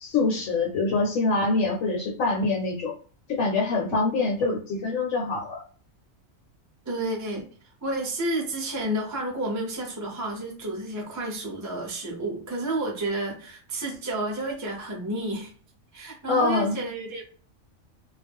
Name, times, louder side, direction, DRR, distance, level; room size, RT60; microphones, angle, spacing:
voice 1, 0.0-2.9 3.3-5.6 16.3-16.7, left 3 dB, 75° left, 0 dB, 1.0 m, -25 dB
voice 2, 6.9-7.5 7.8-15.5 15.9-17.2, right 1 dB, 20° right, -1 dB, 0.6 m, -31 dB
2.3 x 2.0 x 3.4 m, 0.42 s
omnidirectional pair, 1.4 m